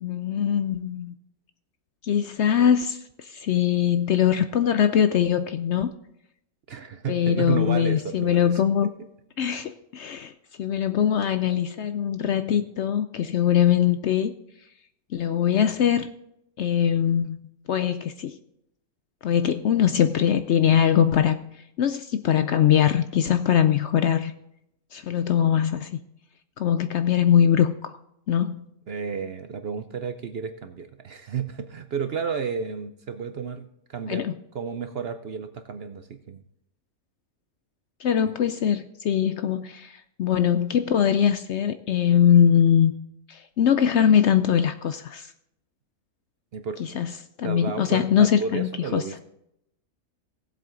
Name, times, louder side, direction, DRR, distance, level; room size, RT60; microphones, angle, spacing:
voice 1, 0.0-1.1 2.0-5.9 7.1-8.9 9.4-10.3 10.6-14.3 15.1-16.1 16.6-17.4 17.7-18.4 19.2-21.4 21.8-24.3 24.9-26.0 26.6-28.0 28.3-28.6 34.1-34.3 38.0-42.9 43.3-45.3 46.8-47.1 47.4-49.0, left 9 dB, 65° left, 10 dB, 0.7 m, -22 dB
voice 2, 6.7-8.6 28.9-34.2 34.5-36.4 46.5-47.0 47.4-49.2, right 6 dB, 55° right, 9 dB, 0.7 m, -32 dB
17.0 x 7.8 x 3.8 m, 0.79 s
omnidirectional pair, 1.5 m